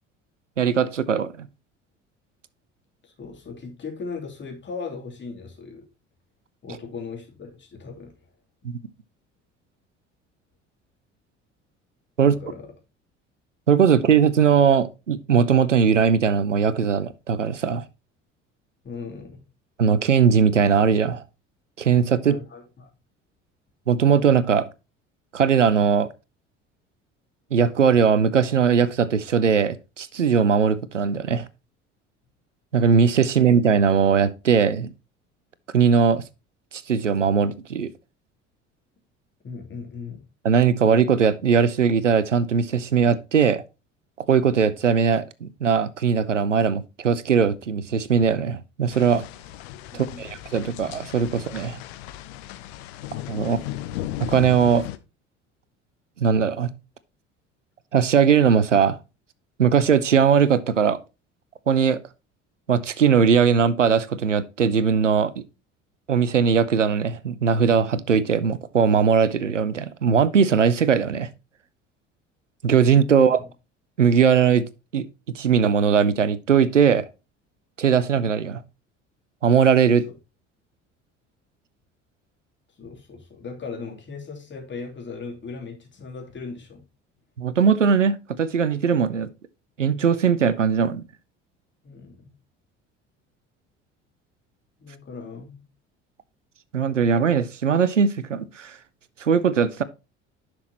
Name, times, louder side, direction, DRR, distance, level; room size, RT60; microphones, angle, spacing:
voice 1, 0.6-1.5 8.6-8.8 12.2-12.3 13.7-17.8 19.8-21.2 21.8-22.3 23.9-24.7 25.3-26.1 27.5-31.5 32.7-34.9 35.7-36.2 36.7-37.9 40.4-43.6 44.3-49.2 49.9-51.8 53.3-53.6 54.2-54.9 56.2-56.7 57.9-59.0 59.6-61.0 61.7-62.0 62.7-65.3 66.1-71.3 72.6-73.4 74.0-74.6 74.9-75.1 75.3-77.1 77.8-78.6 79.4-80.1 87.4-89.3 89.8-91.0 96.7-98.8 99.2-99.8, right 6 dB, 90° right, 0.5 m, -20 dB
voice 2, 3.0-5.9 6.6-8.1 12.2-12.7 18.8-19.4 22.2-22.9 39.4-40.2 49.9-50.2 53.4-53.8 73.1-73.5 80.1-80.2 82.8-86.8 91.8-92.3 94.8-95.6, left 4 dB, 30° left, 3.0 m, -38 dB
sound 1, 48.9-55.0, left 14 dB, 60° left, 0.7 m, -36 dB
10.5 x 6.0 x 2.9 m
figure-of-eight pair, 60°, 36 cm